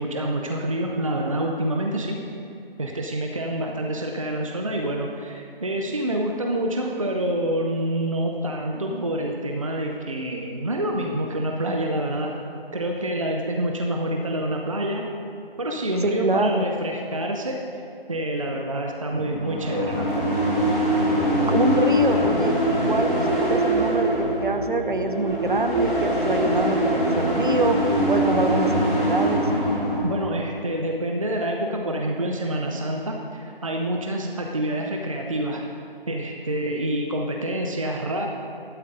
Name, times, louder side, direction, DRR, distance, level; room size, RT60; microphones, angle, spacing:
voice 1, 0.0-2.2 2.8-12.3 12.7-15.0 15.6-17.8 18.1-20.3 30.0-35.6 36.1-38.3, right 1 dB, 35° right, 1 dB, 0.7 m, -27 dB
voice 2, 16.0-16.7 21.5-27.8 28.1-29.5, right 2 dB, 55° right, 7 dB, 1.0 m, -25 dB
sound 1, 19.1-30.2, equal, 5° left, 1.3 m, -23 dB
12.5 x 12.0 x 3.8 m, 2.6 s
figure-of-eight pair, 165°, 29 cm